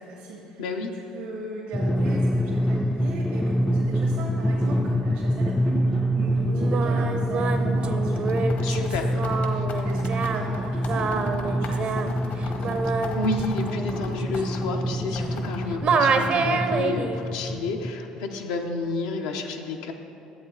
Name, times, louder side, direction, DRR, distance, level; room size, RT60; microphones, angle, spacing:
voice 1, 0.0-0.7 0.9-8.7 9.8-12.9, right 2 dB, 80° right, -3 dB, 1.3 m, -38 dB
voice 2, 0.6-0.9 8.6-9.2 9.5-9.6 13.2-19.9, left 3 dB, 80° left, 3 dB, 0.8 m, -30 dB
Drum, 1.7-17.9, equal, 10° left, 0.4 m, -26 dB
Singing, 6.5-15.5 15.8-17.2, right 5 dB, 50° right, 0.7 m, -28 dB
sound 1, 8.1-14.7 15.2-15.8, left 4 dB, 65° left, 1.3 m, -39 dB
11.0 x 8.0 x 3.9 m, 2.9 s
supercardioid pair, 75°, 3 cm